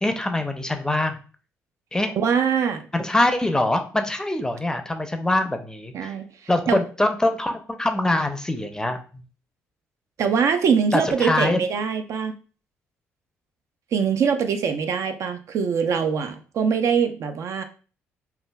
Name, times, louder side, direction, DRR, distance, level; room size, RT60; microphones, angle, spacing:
voice 1, 0.0-1.2 1.9-2.1 2.9-6.2 6.5-9.2 10.9-11.6, left 1 dB, 10° left, 7 dB, 0.5 m, -23 dB
voice 2, 2.2-2.9 5.9-6.3 6.7-6.8 10.2-12.4 13.9-17.6, right 6 dB, 60° right, 7 dB, 0.4 m, -23 dB
3.2 x 2.2 x 2.2 m, 0.37 s
hypercardioid pair, 55°, 6 cm